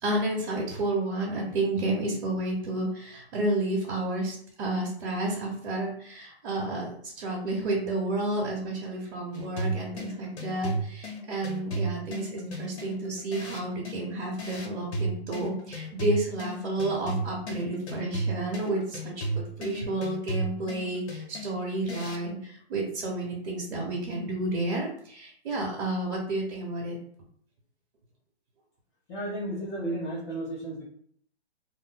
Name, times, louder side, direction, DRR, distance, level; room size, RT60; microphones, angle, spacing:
voice 1, 0.0-27.0, right 2 dB, 55° right, -2 dB, 1.2 m, -31 dB
sound 1, 9.3-22.3, right 2 dB, 80° left, 1.1 m, -35 dB
voice 2, 29.1-30.8, right 1 dB, 30° left, -7 dB, 1.0 m, -33 dB
2.7 x 2.5 x 3.8 m, 0.63 s
hypercardioid pair, 150°, 33 cm